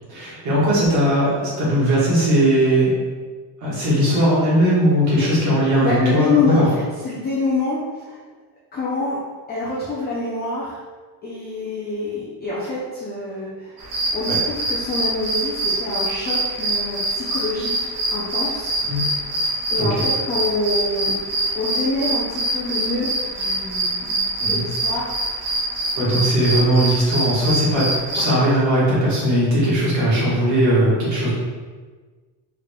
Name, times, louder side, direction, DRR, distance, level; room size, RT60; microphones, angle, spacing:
voice 1, 0.1-2.9 3.6-6.7 14.3-14.4 18.9-19.0 19.8-20.0 24.4-24.6 26.0-27.9 28.1-31.3, right 1 dB, 40° right, -7 dB, 1.3 m, -18 dB
voice 2, 5.8-6.7 7.0-8.2 8.7-9.2 9.5-10.8 11.2-18.8 19.7-25.6, left 3 dB, 25° left, -6 dB, 0.4 m, -26 dB
sound 1, 13.8-28.3, right 1 dB, 70° right, 0.8 m, -24 dB
3.6 x 3.4 x 2.2 m, 1.4 s
cardioid pair, 170°, 42 cm